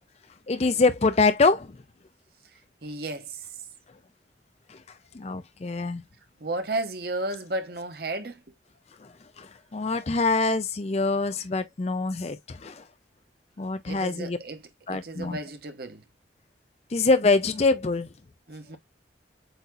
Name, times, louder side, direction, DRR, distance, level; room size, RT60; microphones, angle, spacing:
voice 1, 0.5-1.7 5.1-6.0 9.4-12.8 13.6-14.4 14.9-15.4 16.9-18.1, left 3 dB, 35° left, 0.5 m, -24 dB
voice 2, 2.8-3.4 6.4-8.4 13.9-14.6 14.9-16.0 18.5-18.8, right 2 dB, 55° right, 1.0 m, -33 dB
8.0 x 2.8 x 2.3 m
head